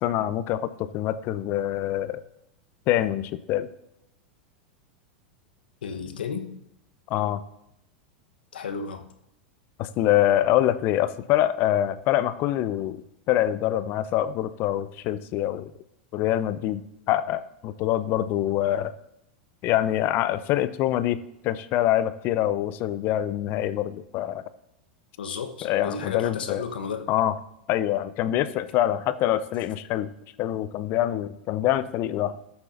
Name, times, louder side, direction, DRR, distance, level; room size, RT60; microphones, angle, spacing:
voice 1, 0.0-2.2 2.9-3.7 7.1-7.4 9.8-13.0 13.3-15.7 16.1-16.8 17.1-18.9 19.6-24.4 25.6-26.6 27.1-27.3 27.7-30.1 30.4-32.4, left 12 dB, 45° left, 14 dB, 0.7 m, -25 dB
voice 2, 5.8-6.5 8.5-9.0 25.2-27.1, left 5 dB, 70° left, 5 dB, 1.1 m, -33 dB
18.5 x 7.1 x 2.7 m, 0.83 s
figure-of-eight pair, 90°, 5 cm